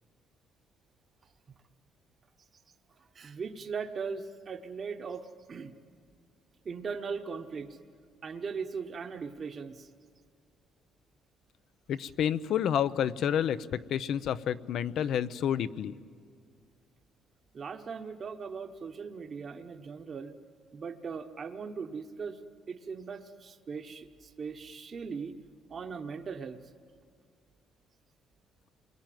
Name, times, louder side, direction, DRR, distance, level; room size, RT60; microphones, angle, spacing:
voice 1, 3.0-5.7 6.6-7.8 8.2-9.9 17.5-20.3 20.7-22.4 22.7-25.4 25.7-26.6, right 5 dB, 35° right, 6 dB, 1.2 m, -39 dB
voice 2, 11.9-15.9, left 9 dB, 65° left, 14 dB, 0.7 m, -29 dB
28.5 x 22.0 x 9.2 m, 2.1 s
cardioid pair, 140°, 0 cm